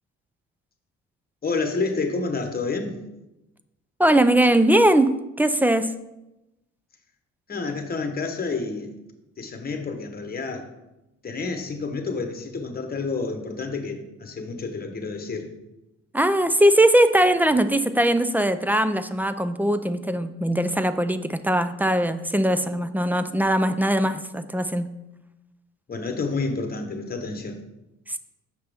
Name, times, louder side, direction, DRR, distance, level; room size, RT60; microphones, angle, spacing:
voice 1, 1.4-3.0 7.5-8.9 9.4-10.7 11.2-15.5 25.9-27.6, left 4 dB, 30° left, 5 dB, 1.1 m, -29 dB
voice 2, 4.0-5.9 16.1-24.9 28.1-28.2, right 1 dB, 5° right, 11 dB, 0.4 m, -20 dB
6.5 x 5.7 x 3.5 m, 0.94 s
cardioid pair, 90°, 30 cm